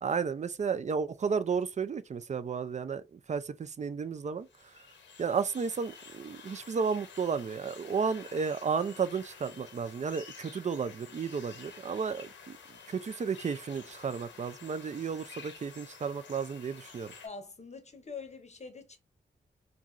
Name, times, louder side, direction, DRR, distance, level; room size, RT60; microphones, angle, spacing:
voice 1, 0.0-4.8 5.2-12.6 12.9-17.1, right 6 dB, 40° right, 0.4 m, -33 dB
sound 1, 4.5-17.3, left 6 dB, 80° left, 0.7 m, -51 dB
voice 2, 17.2-19.0, left 4 dB, 35° left, 0.7 m, -44 dB
2.6 x 2.3 x 3.0 m
supercardioid pair, 40°, 19 cm